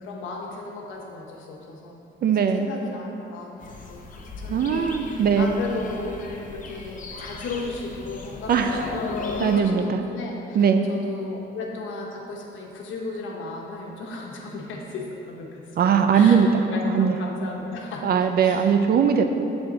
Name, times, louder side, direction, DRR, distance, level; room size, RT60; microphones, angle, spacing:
voice 1, 0.0-16.4 16.6-18.7, left 3 dB, 80° left, -1 dB, 0.9 m, -35 dB
voice 2, 2.2-2.7 4.5-5.5 8.5-8.9 9.4-10.0 10.5-10.9 15.8-16.5 16.9-17.1 18.0-19.3, right 7 dB, 50° right, 7 dB, 0.5 m, -20 dB
sound 1, 3.6-9.6, left 4 dB, 40° left, 0.7 m, -36 dB
7.9 x 3.5 x 3.9 m, 2.8 s
cardioid pair, 90°, 20 cm